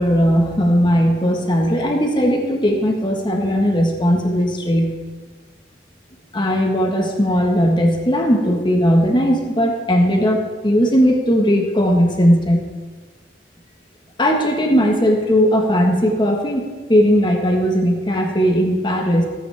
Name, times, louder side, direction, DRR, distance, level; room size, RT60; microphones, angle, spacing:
voice 1, 0.0-4.9 6.3-12.6 14.2-19.2, equal, 25° left, 1 dB, 1.5 m, -17 dB
15.5 x 9.1 x 3.5 m, 1.3 s
head